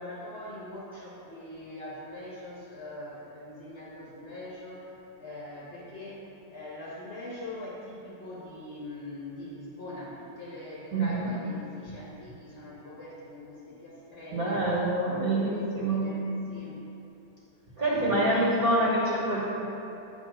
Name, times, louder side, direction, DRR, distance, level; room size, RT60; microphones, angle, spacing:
voice 1, 0.0-14.6 15.3-16.9 17.9-18.6, left 1 dB, 45° left, -6 dB, 1.0 m, -42 dB
voice 2, 10.9-11.3 14.3-16.2 17.8-19.4, right 1 dB, 60° right, -7 dB, 2.1 m, -26 dB
8.5 x 3.4 x 6.0 m, 3.0 s
omnidirectional pair, 1.8 m